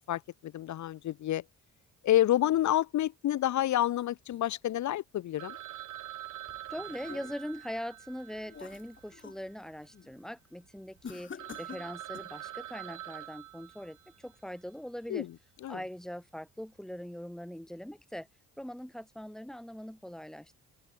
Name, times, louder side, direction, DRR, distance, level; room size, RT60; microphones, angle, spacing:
voice 1, 0.0-1.4 2.0-5.6 15.1-15.3 15.6-15.8, left 13 dB, 70° left, 1.2 m, -28 dB
Telephone, 5.4-9.7 10.0-10.1 10.6-10.7 11.1-11.2 11.4-14.3, right 14 dB, 80° right, 2.1 m, -45 dB
sound 1, 6.5-7.6 8.1-9.5 9.8-10.2 11.0-12.4, left 6 dB, 40° left, 2.8 m, -48 dB
voice 2, 6.7-11.3 11.6-15.3 15.7-18.3 18.6-20.6, equal, ahead, 3.2 m, -41 dB
open air
cardioid pair, 90°, 30 cm